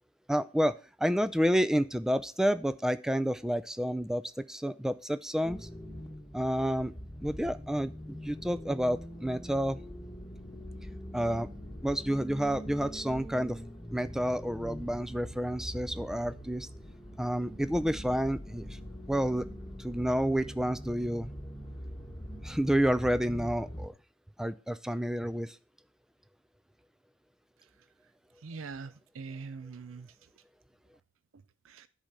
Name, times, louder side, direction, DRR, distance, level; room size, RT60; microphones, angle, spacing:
voice 1, 0.3-5.7 6.3-6.9 7.2-9.8 11.1-11.5 11.8-13.6 13.9-16.7 17.2-18.8 19.1-19.4 19.8-21.3 22.4-23.9 24.4-25.6, equal, 5° right, 14 dB, 0.4 m, -29 dB
sound 1, 5.4-23.9, equal, 15° left, 1.5 m, -43 dB
voice 2, 28.4-30.1 31.6-31.9, right 4 dB, 80° right, 13 dB, 0.5 m, -43 dB
10.5 x 5.0 x 6.6 m, 0.37 s
head